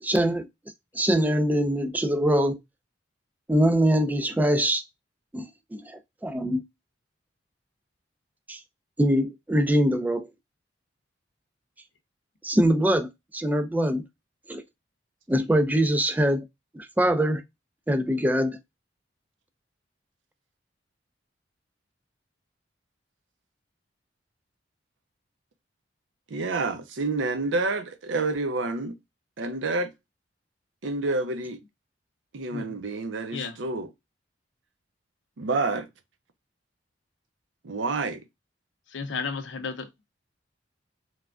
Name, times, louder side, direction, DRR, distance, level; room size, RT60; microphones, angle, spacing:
voice 1, 0.0-0.5 0.9-2.6 3.5-4.8 5.3-6.6 8.5-8.6 9.0-10.3 12.4-14.0 14.5-14.6 15.3-16.4 16.7-17.4 17.9-18.6, equal, 10° right, 0.4 m, -23 dB
voice 2, 26.3-28.9 29.4-29.9 30.8-31.6 32.3-33.9 35.4-35.9 37.6-38.2, right 3 dB, 80° right, 0.6 m, -28 dB
voice 3, 38.9-39.9, left 5 dB, 75° left, 0.6 m, -33 dB
3.2 x 2.2 x 2.4 m
head